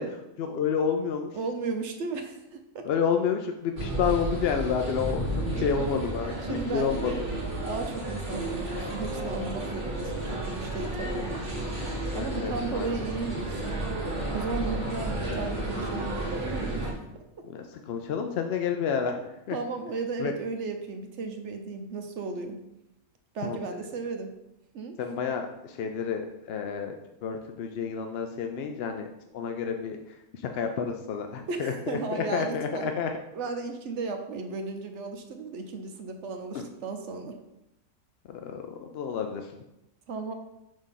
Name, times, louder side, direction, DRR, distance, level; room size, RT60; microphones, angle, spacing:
voice 1, 0.0-1.3 2.8-7.1 12.1-12.9 17.5-19.6 20.2-20.3 23.4-23.6 25.0-26.9 27.2-30.0 30.5-33.1 38.3-39.5, left 6 dB, 65° left, 5 dB, 0.6 m, -30 dB
voice 2, 1.3-2.9 5.5-6.0 6.4-7.2 7.7-11.4 12.1-13.9 14.3-17.0 19.5-22.6 23.3-24.3 24.7-25.0 31.5-32.9 33.3-37.3 40.1-40.3, right 4 dB, 60° right, 5 dB, 0.9 m, -35 dB
sound 1, 3.8-16.9, right 1 dB, 40° right, 1.9 m, -32 dB
5.2 x 3.6 x 5.7 m, 0.87 s
omnidirectional pair, 1.5 m